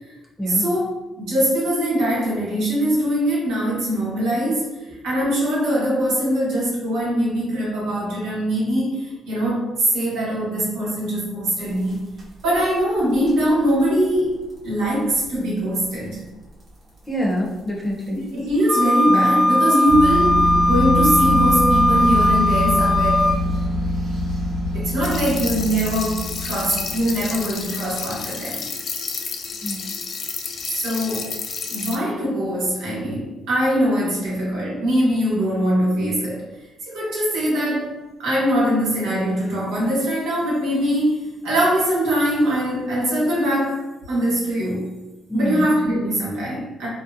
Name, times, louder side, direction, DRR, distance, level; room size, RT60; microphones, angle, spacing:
voice 1, 0.5-0.9 1.2-4.7 5.0-12.0 12.4-14.3 14.6-16.2 18.1-23.5 24.7-28.6 30.8-31.3 31.7-36.4 36.9-43.8 44.1-44.9 45.3-46.9, equal, 90° right, -5 dB, 1.0 m, -22 dB
sound 1, 11.6-12.7 13.1-13.3 13.7-13.9 14.2-14.3 14.5-14.6 15.2-15.3 16.1-16.2 16.6-16.7 18.0-18.1 18.7-18.8 19.9-28.2, left 1 dB, 50° right, 0.9 m, -25 dB
voice 2, 17.1-18.2 29.6-29.9 45.3-45.6, equal, 15° left, -2 dB, 0.6 m, -25 dB
Wind instrument woodwind instrument, 18.7-23.4, left 1 dB, 25° right, 0.8 m, -18 dB
sound 2, 25.0-32.0, left 5 dB, 60° left, 0.3 m, -31 dB
2.7 x 2.1 x 2.4 m, 1.0 s
cardioid pair, 90°, 0 cm